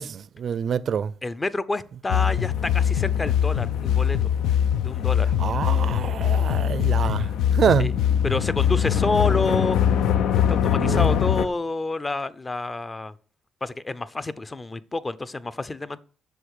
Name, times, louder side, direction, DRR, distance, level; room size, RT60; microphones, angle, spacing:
voice 1, 0.0-1.1 5.4-7.9 10.8-11.2, right 7 dB, 55° right, 0.5 m, -26 dB
voice 2, 1.2-4.3 4.8-5.3 7.8-7.9 8.2-9.8 10.5-13.1 13.6-16.0, left 2 dB, 25° left, 0.7 m, -28 dB
sound 1, 2.1-11.5, left 9 dB, 80° left, 0.6 m, -22 dB
7.9 x 6.3 x 6.6 m
cardioid pair, 90°, 0 cm